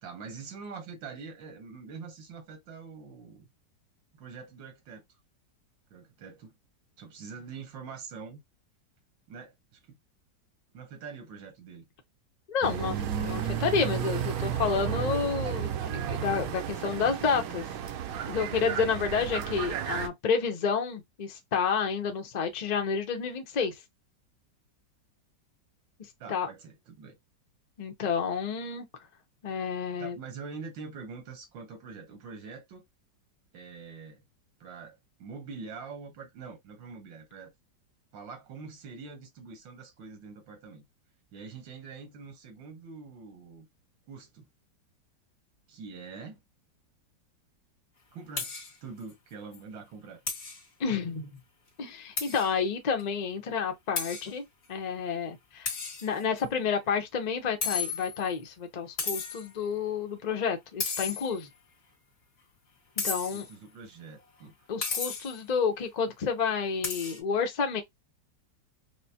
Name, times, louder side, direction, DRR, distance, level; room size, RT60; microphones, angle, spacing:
voice 1, 0.0-3.5 4.2-5.0 5.9-6.5 7.0-8.4 9.3-10.0 10.7-11.9 26.2-27.1 30.0-32.8 33.5-34.2 34.6-37.5 38.1-40.8 41.3-43.7 44.1-44.4 45.7-46.4 48.1-48.5 48.8-50.2 63.1-64.5, right 5 dB, 90° right, 1.8 m, -44 dB
voice 2, 12.5-17.7 18.3-23.7 26.3-26.5 27.8-28.9 29.4-30.2 50.8-51.3 51.8-54.4 54.7-55.7 56.0-61.5 63.0-63.5 64.7-67.8, left 6 dB, 80° left, 0.3 m, -30 dB
sound 1, 12.6-20.1, right 9 dB, 70° right, 0.9 m, -33 dB
sound 2, 48.4-48.8 49.1-49.2 49.5-49.6 50.3-50.6 52.2-52.5 53.0-53.1 54.0-54.3 55.7-56.4 57.6-58.3 59.0-59.5 60.8-61.5 63.0-63.5 64.8-65.4 66.8-67.2, left 5 dB, 45° left, 1.8 m, -33 dB
4.7 x 2.0 x 2.8 m
omnidirectional pair, 2.0 m